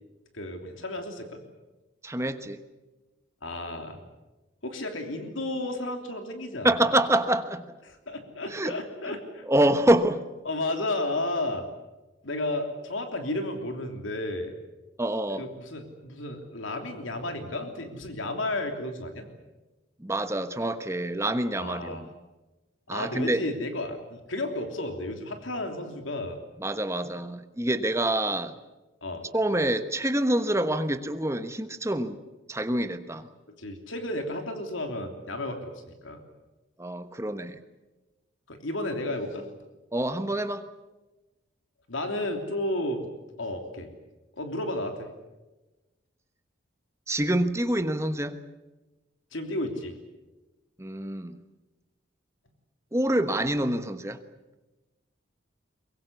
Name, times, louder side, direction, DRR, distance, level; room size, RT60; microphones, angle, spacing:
voice 1, 0.3-1.4 3.4-4.0 4.6-6.7 7.9-9.4 10.4-11.6 12.2-14.5 15.4-19.3 21.6-22.0 22.9-26.4 29.0-29.3 33.5-36.2 38.5-39.5 41.9-43.1 43.4-43.9 44.3-45.1 49.3-50.0, left 1 dB, 80° left, 5 dB, 3.2 m, -32 dB
voice 2, 2.0-2.6 6.6-7.6 8.5-8.7 9.5-10.2 15.0-15.5 20.0-22.1 22.9-23.4 26.6-28.6 29.3-32.2 32.5-33.3 36.8-37.6 39.9-40.6 47.1-48.4 50.8-51.4 52.9-54.2, right 1 dB, 15° right, 9 dB, 1.2 m, -26 dB
23.0 x 22.5 x 8.2 m, 1.1 s
head